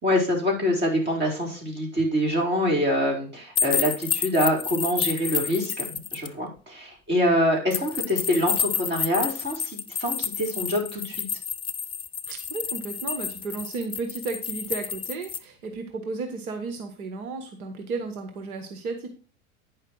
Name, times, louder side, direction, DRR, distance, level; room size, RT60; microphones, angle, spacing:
voice 1, 0.0-11.3, equal, 25° right, 0 dB, 4.5 m, -25 dB
sound 1, 3.6-6.3 7.7-15.4, left 7 dB, 15° left, 0.5 m, -30 dB
voice 2, 12.3-19.1, right 4 dB, 75° right, 5 dB, 1.6 m, -33 dB
9.5 x 5.8 x 4.6 m, 0.36 s
hypercardioid pair, 100°, 43 cm